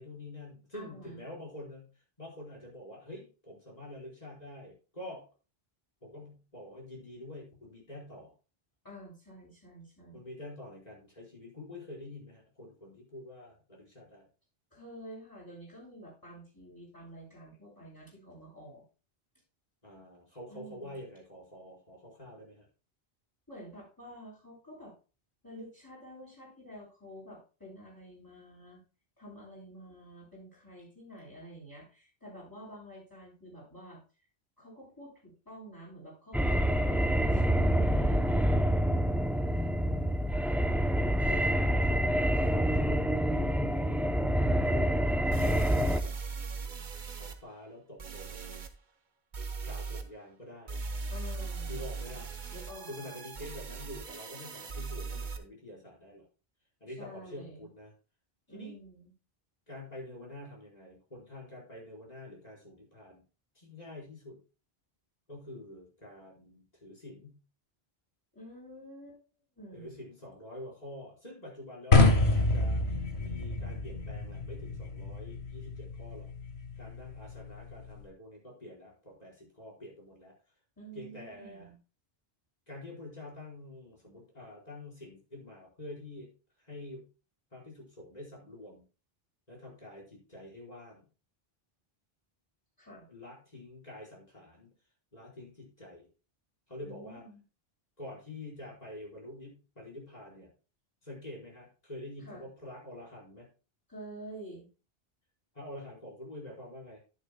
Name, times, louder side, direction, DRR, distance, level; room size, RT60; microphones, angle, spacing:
voice 1, 0.0-1.9 2.2-5.2 6.0-8.3 10.1-14.3 19.8-22.6 41.2-44.1 44.6-46.2 47.2-48.6 49.6-50.8 51.7-52.3 52.9-56.3 56.8-57.9 58.5-58.8 59.7-63.2 63.5-64.4 65.3-67.4 69.7-72.8 73.2-76.3 76.8-80.3 80.9-81.7 82.7-86.3 86.6-87.1 87.5-88.8 89.5-91.0 93.1-94.7 95.1-96.1 96.7-97.2 98.0-100.5 101.0-103.5 105.5-107.0, left 1 dB, 40° left, -4 dB, 4.7 m, -47 dB
voice 2, 0.7-1.2 8.8-10.2 14.7-18.8 20.5-21.0 23.5-24.9 25.4-28.8 29.2-34.0 34.6-39.0 51.1-51.8 52.5-53.2 57.0-57.7 58.5-59.1 68.3-69.2 69.5-70.0 80.8-81.8 92.8-93.1 96.8-97.4 102.2-102.4 103.9-104.7, right 1 dB, 20° left, -5 dB, 6.3 m, -49 dB
sound 1, 36.3-46.0, equal, ahead, 0.4 m, -27 dB
sound 2, 44.6-44.7 45.3-47.4 48.0-48.7 49.3-50.0 50.7-55.4, right 4 dB, 50° right, 1.1 m, -39 dB
sound 3, 71.9-78.0, left 2 dB, 90° left, 1.7 m, -28 dB
11.0 x 10.5 x 2.2 m, 0.33 s
omnidirectional pair, 1.0 m